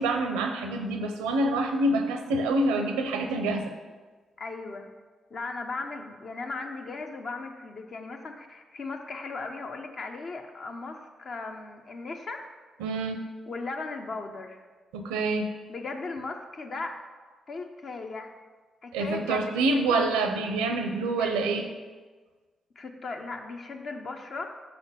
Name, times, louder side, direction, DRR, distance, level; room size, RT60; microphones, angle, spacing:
voice 1, 0.0-3.7 12.8-13.2 14.9-15.5 18.9-21.7, right 2 dB, 85° right, 6 dB, 0.5 m, -26 dB
voice 2, 4.4-4.9 5.3-12.5 13.5-14.6 15.7-16.9 17.5-18.3 18.8-20.1 21.2-21.4 22.8-24.5, left 3 dB, 55° left, 4 dB, 0.8 m, -37 dB
5.8 x 4.3 x 5.8 m, 1.4 s
hypercardioid pair, 40°, 0 cm